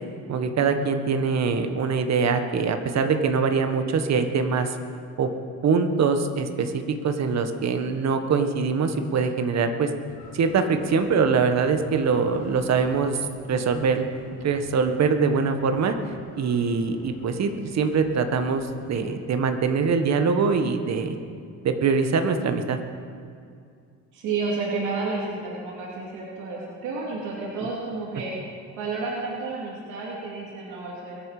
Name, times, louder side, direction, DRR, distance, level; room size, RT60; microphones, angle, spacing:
voice 1, 0.3-4.8 5.2-5.3 5.6-9.9 10.3-13.2 13.5-15.9 16.4-21.2 21.6-22.8, right 5 dB, 60° right, 7 dB, 1.4 m, -23 dB
sound 1, 10.1-19.2, left 2 dB, 90° left, 3.2 m, -47 dB
voice 2, 24.1-28.3 28.8-31.2, right 3 dB, 85° right, -5 dB, 2.7 m, -31 dB
22.5 x 8.8 x 5.0 m, 2.3 s
cardioid pair, 90°, 30 cm